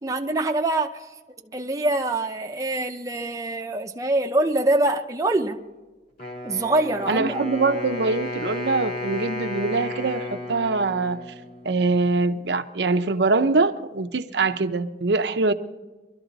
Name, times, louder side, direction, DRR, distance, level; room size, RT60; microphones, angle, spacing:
voice 1, 0.0-1.1 1.5-5.6 6.4-7.4, right 2 dB, 20° right, 0.6 m, -24 dB
Wind instrument woodwind instrument, 6.2-12.1, left 2 dB, 45° left, 3.0 m, -34 dB
voice 2, 7.1-11.2 11.6-15.5, right 3 dB, 65° right, 0.7 m, -23 dB
23.0 x 12.5 x 4.0 m
head